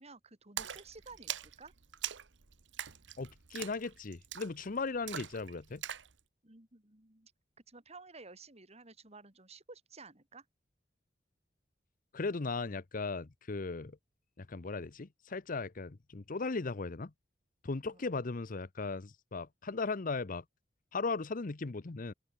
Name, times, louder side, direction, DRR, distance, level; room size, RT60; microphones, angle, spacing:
voice 1, 0.0-1.7 6.4-7.3 7.7-10.5 17.9-18.0, right 3 dB, 35° right, 4.0 m, -53 dB
Splash splatter, 0.6-6.1, right 10 dB, 85° right, 1.1 m, -43 dB
voice 2, 3.2-5.8 12.1-13.9 14.4-17.1 17.6-20.4 20.9-22.1, left 3 dB, 50° left, 0.7 m, -37 dB
open air
head